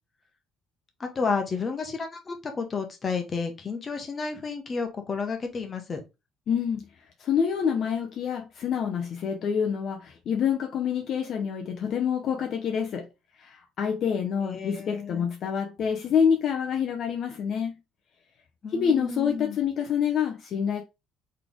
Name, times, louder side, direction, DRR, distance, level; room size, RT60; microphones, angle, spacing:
voice 1, 1.0-6.0 14.4-15.3 18.6-19.6, left 4 dB, 25° left, 1.0 m, -31 dB
voice 2, 6.5-6.8 7.2-13.1 13.4-17.8 18.7-20.8, left 7 dB, 45° left, 0.6 m, -27 dB
4.0 x 3.2 x 3.5 m
cardioid pair, 155°, 0 cm